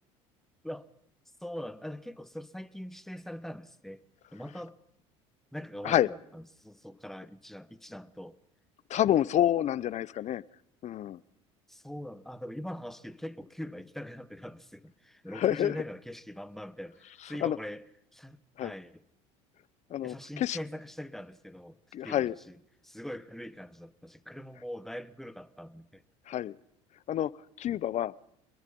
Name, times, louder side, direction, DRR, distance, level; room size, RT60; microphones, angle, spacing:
voice 1, 1.4-4.0 4.3-4.8 5.5-8.4 11.7-17.8 18.1-19.0 20.0-21.8 22.0-26.0, equal, ahead, 1.6 m, -42 dB
voice 2, 8.9-10.4 10.8-11.2 15.3-15.8 17.4-17.6 18.6-18.7 19.9-20.6 21.9-22.3 26.3-26.6 27.1-27.3 27.6-28.1, left 11 dB, 45° left, 0.9 m, -28 dB
28.5 x 21.5 x 5.5 m
hypercardioid pair, 80°, 16 cm